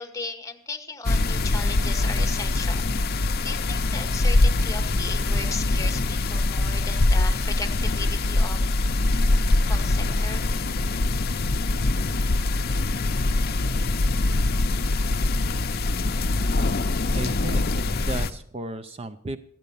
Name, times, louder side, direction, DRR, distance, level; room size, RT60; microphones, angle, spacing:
voice 1, 0.0-3.1 3.4-8.6 9.7-10.5, left 4 dB, 15° left, 5 dB, 1.1 m, -36 dB
sound 1, 1.0-18.3, left 2 dB, 50° left, 0.6 m, -23 dB
voice 2, 17.2-19.4, right 3 dB, 30° right, 10 dB, 0.5 m, -35 dB
13.5 x 9.0 x 6.9 m, 0.71 s
head